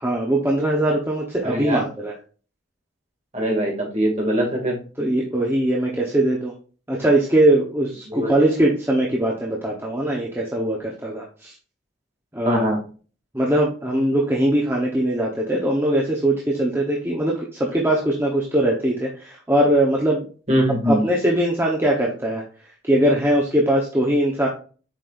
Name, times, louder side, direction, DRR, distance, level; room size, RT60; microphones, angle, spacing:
voice 1, 0.0-2.1 5.0-6.5 6.9-11.5 12.3-12.6 13.3-20.3 20.9-22.4 22.8-24.5, right 1 dB, 10° right, -3 dB, 1.1 m, -21 dB
voice 2, 1.4-1.8 3.3-4.8 8.1-8.3 12.4-12.8 20.5-21.0, equal, 35° right, -1 dB, 2.5 m, -22 dB
7.6 x 5.3 x 2.6 m, 0.38 s
head